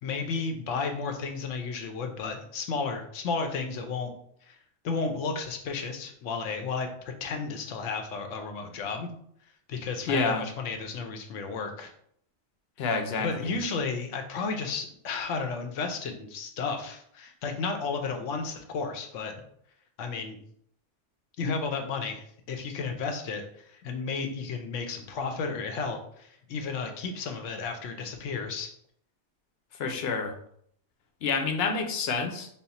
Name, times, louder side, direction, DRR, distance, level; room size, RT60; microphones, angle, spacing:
voice 1, 0.0-4.1 4.5-4.6 4.8-9.1 9.7-11.9 13.2-19.3 20.0-20.4 21.4-28.7, left 4 dB, 90° left, 4 dB, 1.0 m, -33 dB
voice 2, 10.1-10.4 12.8-13.5 29.7-30.4 31.2-32.5, left 4 dB, 65° left, 5 dB, 0.8 m, -28 dB
4.2 x 2.0 x 4.0 m, 0.67 s
omnidirectional pair, 1.2 m